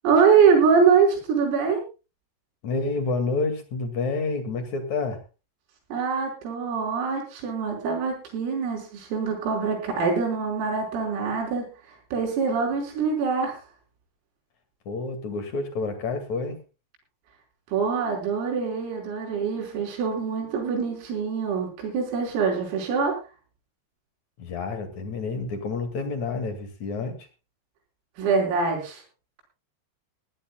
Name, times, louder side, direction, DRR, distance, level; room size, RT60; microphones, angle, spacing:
voice 1, 0.0-1.8 5.9-13.6 17.7-23.2 28.2-29.0, right 5 dB, 80° right, 1 dB, 7.9 m, -24 dB
voice 2, 2.6-5.2 14.9-16.6 24.4-27.3, left 3 dB, 45° left, 8 dB, 2.6 m, -29 dB
21.5 x 16.0 x 2.3 m, 0.31 s
omnidirectional pair, 5.9 m